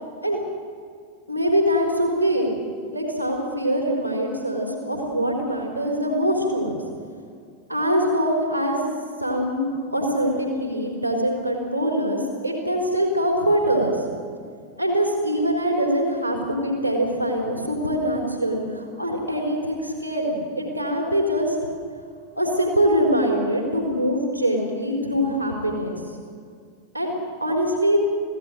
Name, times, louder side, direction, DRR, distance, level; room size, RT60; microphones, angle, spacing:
voice 1, 1.3-2.5 2.9-6.8 7.7-8.9 9.2-13.9 14.8-21.6 22.4-26.0 26.9-27.1 27.4-28.0, equal, 90° right, 1 dB, 4.0 m, -23 dB
24.5 x 16.5 x 7.8 m, 2.2 s
figure-of-eight pair, 90°, 0 cm